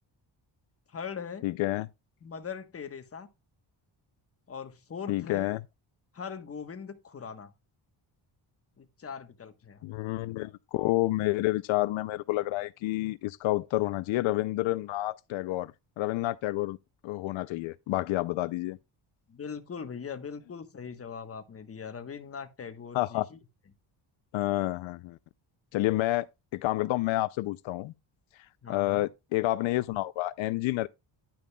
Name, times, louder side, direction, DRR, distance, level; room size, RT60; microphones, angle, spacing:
voice 1, 0.9-1.5 2.2-3.3 4.5-5.5 6.1-7.5 8.8-10.1 19.3-23.4 28.6-29.1, left 6 dB, 30° left, 1.1 m, -41 dB
voice 2, 1.4-1.9 5.1-5.6 9.8-15.7 16.0-16.8 17.0-18.8 22.9-23.3 24.3-25.2 25.7-26.3 26.5-27.9 28.7-30.9, left 17 dB, 85° left, 0.5 m, -29 dB
10.0 x 9.0 x 2.3 m
cardioid pair, 125°, 46 cm